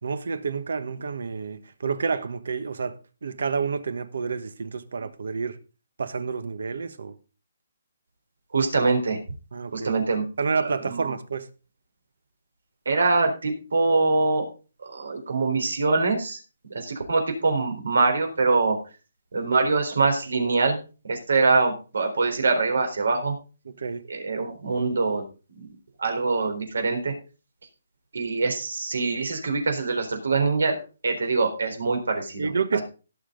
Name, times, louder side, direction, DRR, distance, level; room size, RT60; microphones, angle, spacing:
voice 1, 0.0-5.6 6.0-7.2 9.5-9.9 10.4-11.5 23.6-24.0 32.4-32.8, right 5 dB, 65° right, 1.3 m, -29 dB
voice 2, 8.5-9.2 9.7-10.3 10.6-11.1 12.9-14.5 14.8-16.4 16.7-18.8 19.3-20.8 21.0-23.4 24.1-25.2 25.5-25.7 26.0-27.1 28.1-30.8 31.0-32.8, right 3 dB, 85° right, 4.0 m, -24 dB
17.0 x 6.8 x 3.9 m
hypercardioid pair, 175°, 0 cm